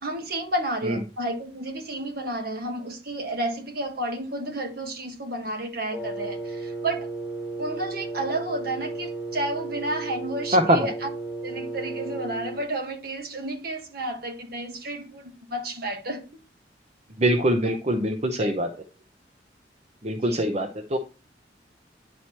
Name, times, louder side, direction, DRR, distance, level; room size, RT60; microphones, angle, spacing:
voice 1, 0.0-7.1 7.6-11.1 11.4-16.2 17.6-17.8 18.4-18.5 20.2-20.5, right 1 dB, 55° right, 1.6 m, -31 dB
Wind instrument woodwind instrument, 5.9-12.6, right 3 dB, ahead, 2.0 m, -34 dB
voice 2, 17.2-18.7 20.0-21.0, right 1 dB, 35° right, 0.7 m, -23 dB
10.0 x 4.5 x 4.3 m
head